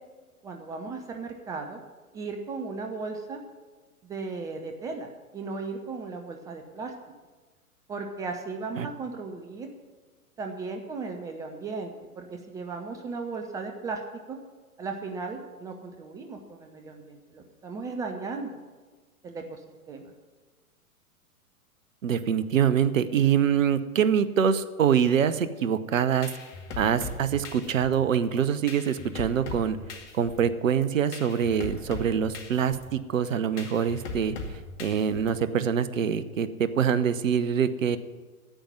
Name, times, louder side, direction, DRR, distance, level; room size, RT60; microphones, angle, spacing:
voice 1, 0.4-1.8 2.1-3.4 4.0-6.9 7.9-9.7 10.4-14.0 14.3-14.4 14.8-18.6 19.2-19.6 19.9-20.1, right 4 dB, 10° right, 4 dB, 0.4 m, -36 dB
voice 2, 22.0-26.3 26.8-29.8 30.1-34.3 34.8-38.0, right 8 dB, 60° right, 13 dB, 0.9 m, -25 dB
sound 1, 25.9-35.6, left 3 dB, 50° left, 2.2 m, -40 dB
10.0 x 8.7 x 9.4 m, 1.3 s
figure-of-eight pair, 105°, 44 cm